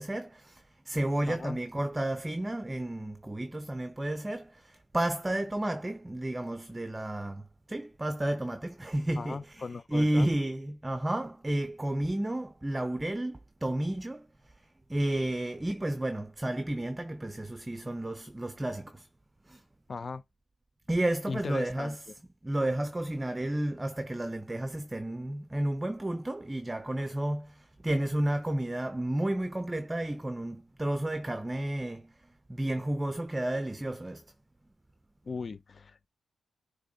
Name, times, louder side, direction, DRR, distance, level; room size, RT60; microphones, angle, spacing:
voice 1, 0.0-14.3 14.9-19.1 19.5-19.6 20.9-22.0 22.4-32.1 32.5-34.2, right 1 dB, 15° right, 0.7 m, -32 dB
voice 2, 1.3-1.6 9.2-10.3 19.9-20.2 21.3-21.9 35.3-36.1, left 4 dB, 45° left, 0.6 m, -38 dB
9.9 x 3.5 x 3.9 m
cardioid pair, 90°, 0 cm